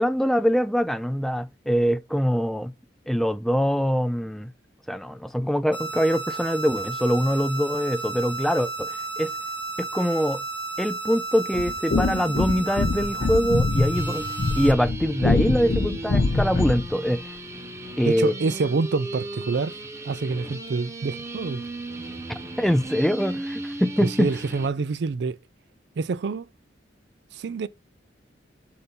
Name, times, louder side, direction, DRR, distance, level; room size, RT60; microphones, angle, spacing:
voice 1, 0.0-2.7 3.1-4.5 4.9-9.3 9.8-10.4 10.8-14.3 14.6-17.2 18.0-18.3 22.3-24.3, equal, ahead, 0.4 m, -24 dB
sound 1, 5.7-14.7, right 3 dB, 25° left, 1.7 m, -33 dB
sound 2, 11.5-16.9, left 3 dB, 50° left, 0.5 m, -24 dB
sound 3, 13.9-24.7, right 2 dB, 15° right, 0.8 m, -36 dB
voice 2, 18.0-19.8 20.0-21.7 24.0-25.4 26.0-26.5 27.3-27.7, right 4 dB, 60° right, 0.4 m, -27 dB
7.8 x 2.8 x 5.3 m
head